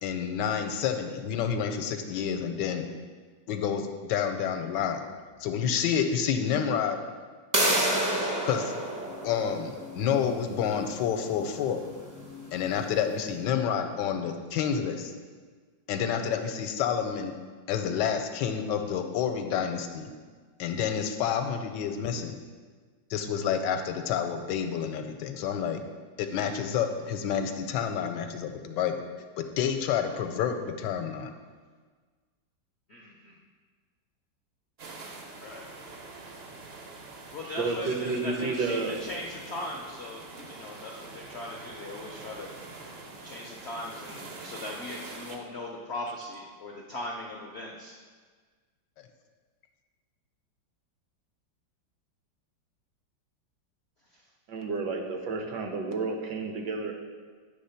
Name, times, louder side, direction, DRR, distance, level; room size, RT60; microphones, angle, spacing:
voice 1, 0.0-2.8 3.5-5.0 5.4-7.0 8.5-8.7 9.2-11.8 12.5-15.1 15.9-17.3 17.7-20.1 20.6-22.4 23.1-25.8 26.2-29.1 29.4-31.3, left 8 dB, 80° left, 6 dB, 1.2 m, -29 dB
sound 1, 7.5-13.1, right 1 dB, 25° right, 0.4 m, -31 dB
voice 2, 32.9-33.3 35.4-35.7 37.3-42.5 43.2-48.0, left 2 dB, 65° left, -1 dB, 0.6 m, -39 dB
sound 2, 34.8-45.4, right 3 dB, 55° right, 0.7 m, -45 dB
voice 3, 37.4-39.0 54.5-56.9, right 3 dB, 75° right, 3 dB, 1.4 m, -31 dB
8.5 x 3.3 x 5.6 m, 1.5 s
omnidirectional pair, 1.9 m